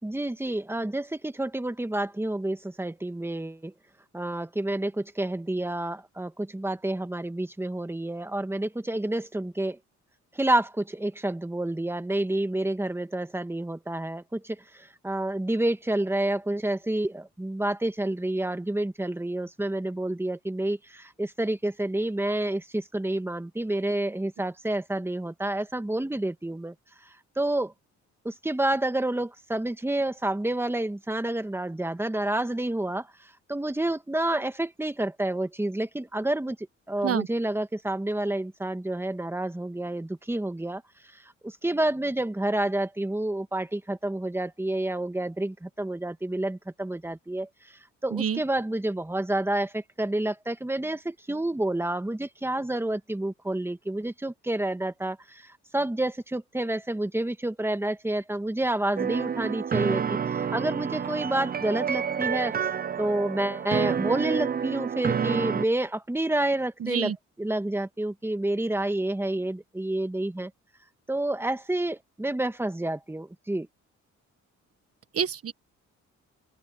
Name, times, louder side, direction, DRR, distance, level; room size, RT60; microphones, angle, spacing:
voice 1, 0.0-3.7 4.1-9.8 10.3-26.7 27.0-27.7 28.2-36.6 36.9-40.8 41.1-62.7 63.0-67.1 67.4-70.5 71.1-73.7, right 1 dB, 10° right, 1.8 m, -29 dB
voice 2, 48.1-48.4 66.8-67.2 75.1-75.5, right 8 dB, 50° right, 1.6 m, -27 dB
sound 1, 59.0-65.7, right 7 dB, 30° right, 0.6 m, -29 dB
open air
cardioid pair, 90°, 30 cm